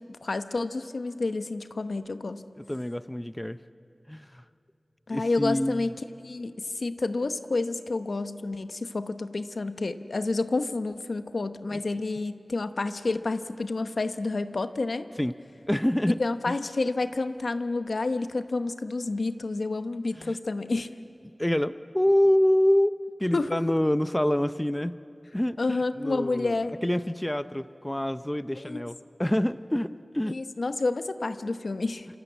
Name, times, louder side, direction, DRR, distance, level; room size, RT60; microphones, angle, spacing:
voice 1, 0.0-2.4 5.1-5.9 6.2-15.1 16.1-20.9 23.3-23.6 25.6-26.8 28.5-28.9 30.3-32.1, left 3 dB, 75° left, 10 dB, 1.0 m, -29 dB
voice 2, 2.7-3.6 4.1-4.4 5.1-5.9 11.7-11.8 15.2-15.3 15.7-16.2 20.2-20.4 21.4-22.9 23.2-25.0 25.3-25.6 26.0-26.6 26.8-30.4, left 1 dB, 15° left, 13 dB, 0.6 m, -26 dB
27.0 x 27.0 x 8.1 m, 2.6 s
wide cardioid pair, 70°, 0 cm